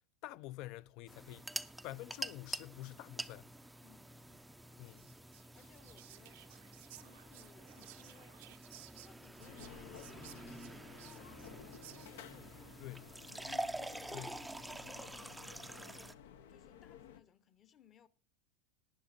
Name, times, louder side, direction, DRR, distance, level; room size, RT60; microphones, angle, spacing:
voice 1, 0.2-1.5 1.8-3.5 4.8-5.1 12.8-13.0 14.1-14.4, left 16 dB, 50° left, 0.5 m, -48 dB
sound 1, 1.1-16.1, right 1 dB, 5° right, 0.5 m, -47 dB
voice 2, 3.8-5.0 5.5-6.4 6.9-8.4 8.8-14.3 14.6-16.2 16.5-18.1, left 8 dB, 30° left, 0.9 m, -65 dB
Whispering, 4.8-12.3, right 17 dB, 70° right, 0.6 m, -58 dB
sound 2, 9.4-17.2, left 8 dB, 85° left, 0.9 m, -55 dB
18.0 x 10.5 x 2.6 m
supercardioid pair, 140°, 0 cm